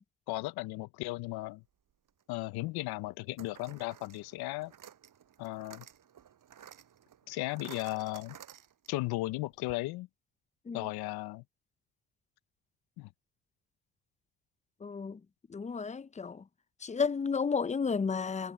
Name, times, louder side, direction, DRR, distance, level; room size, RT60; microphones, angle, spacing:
voice 1, 0.3-1.6 2.3-4.7 5.4-5.8 7.3-8.4 8.9-10.1 10.7-11.4 13.0-13.1, left 19 dB, 85° left, 0.7 m, -36 dB
sound 1, 2.1-2.2 3.4-9.1 9.4-9.5 9.7-9.8, right 9 dB, 60° right, 7.2 m, -53 dB
voice 2, 14.8-15.2 15.5-16.4 16.8-18.5, left 5 dB, 20° left, 0.6 m, -32 dB
supercardioid pair, 70°, 37 cm